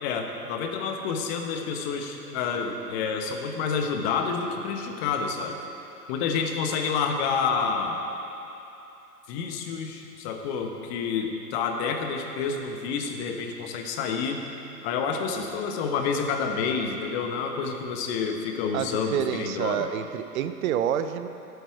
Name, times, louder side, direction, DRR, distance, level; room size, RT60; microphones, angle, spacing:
voice 1, 0.0-5.5 6.1-8.0 9.3-14.4 14.8-19.9, left 5 dB, 40° left, 4 dB, 1.1 m, -29 dB
voice 2, 18.7-21.3, right 9 dB, 60° right, 11 dB, 0.7 m, -28 dB
12.0 x 8.3 x 4.8 m, 2.9 s
hypercardioid pair, 115°, 47 cm